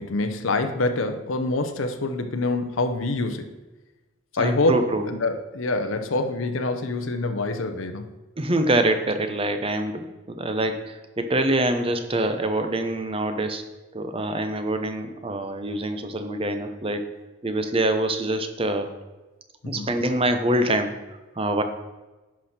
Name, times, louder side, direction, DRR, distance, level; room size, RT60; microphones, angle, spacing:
voice 1, 0.0-3.6 4.3-8.2 19.6-19.9, left 2 dB, 75° left, 7 dB, 0.8 m, -26 dB
voice 2, 4.4-5.1 8.4-13.6 13.9-17.0 17.4-18.9 19.7-20.9 21.4-21.6, right 1 dB, 25° right, 8 dB, 0.8 m, -25 dB
10.5 x 6.1 x 4.3 m, 1.1 s
head